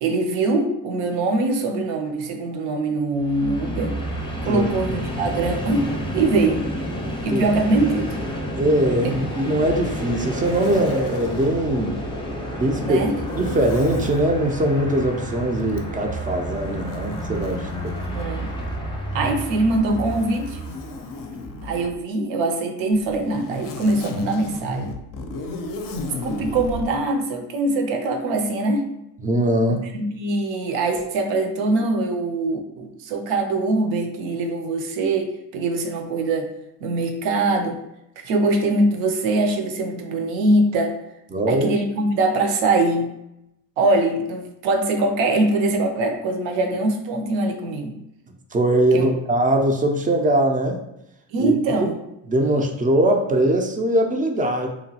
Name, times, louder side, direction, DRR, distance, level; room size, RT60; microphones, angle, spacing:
voice 1, 0.0-4.0 4.4-5.9 6.1-6.7 7.2-8.0 9.0-9.1 12.7-13.1 18.1-18.5 19.1-20.6 21.6-24.9 26.2-28.8 29.9-36.5 36.8-37.8 38.2-40.9 41.5-43.1 43.8-47.9 48.9-49.1 51.3-51.9, right 2 dB, 75° right, 5 dB, 0.7 m, -22 dB
Train, 3.1-21.3, equal, 10° left, 0.7 m, -30 dB
voice 2, 4.4-5.0 7.3-7.5 8.6-12.0 12.6-13.0 13.3-17.9 29.2-29.9 41.3-41.7 48.5-50.8 51.4-51.9 52.3-54.7, right 1 dB, 20° right, 3 dB, 0.3 m, -21 dB
Zipper (clothing), 10.2-11.6 13.2-14.3 15.7-18.9 19.7-22.0 22.9-26.9, left 3 dB, 45° left, 0.5 m, -36 dB
3.0 x 2.2 x 2.8 m, 0.85 s
supercardioid pair, 80°, 46 cm